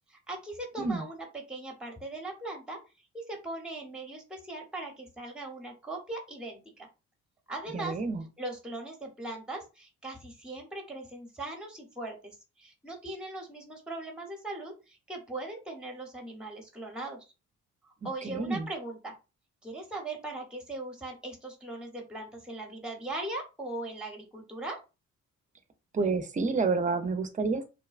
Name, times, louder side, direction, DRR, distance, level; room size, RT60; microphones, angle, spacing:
voice 1, 0.1-2.8 3.1-6.9 7.5-8.0 8.4-17.3 17.8-19.1 19.6-24.8, right 2 dB, 5° right, 2 dB, 0.8 m, -39 dB
voice 2, 7.7-8.2 18.2-18.7 25.9-27.6, right 4 dB, 25° right, 9 dB, 0.5 m, -29 dB
2.8 x 2.1 x 2.4 m, 0.29 s
cardioid pair, 90°, 30 cm